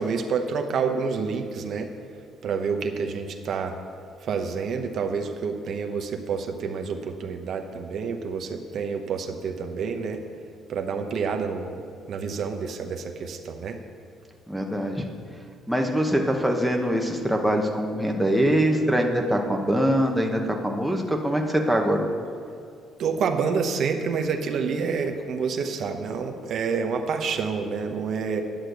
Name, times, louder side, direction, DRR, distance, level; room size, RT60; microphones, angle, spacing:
voice 1, 0.0-1.9 2.4-3.8 4.2-10.2 10.7-11.8 12.1-13.8 23.0-28.4, right 5 dB, 55° right, 5 dB, 0.9 m, -28 dB
voice 2, 14.5-15.0 15.7-22.1, equal, ahead, 1 dB, 1.0 m, -23 dB
10.5 x 6.6 x 7.9 m, 2.4 s
cardioid pair, 140°, 0 cm